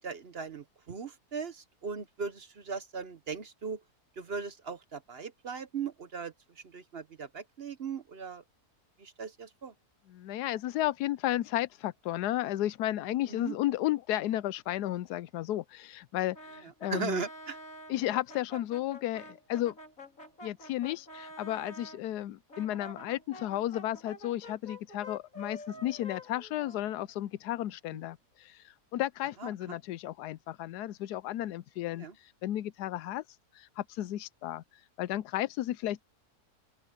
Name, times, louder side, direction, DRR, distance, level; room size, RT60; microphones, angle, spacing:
voice 1, 0.0-3.8 4.2-6.3 6.6-8.4 9.0-9.7 13.3-13.6 16.9-17.6 29.4-29.5 32.0-32.1, right 5 dB, 45° right, 1.0 m, -38 dB
voice 2, 10.1-17.2 17.9-19.7 20.4-33.2 33.5-34.6 35.0-36.0, left 14 dB, 90° left, 1.2 m, -33 dB
Brass instrument, 16.3-22.0 22.5-27.3, left 1 dB, 60° left, 5.1 m, -48 dB
open air
omnidirectional pair, 1.7 m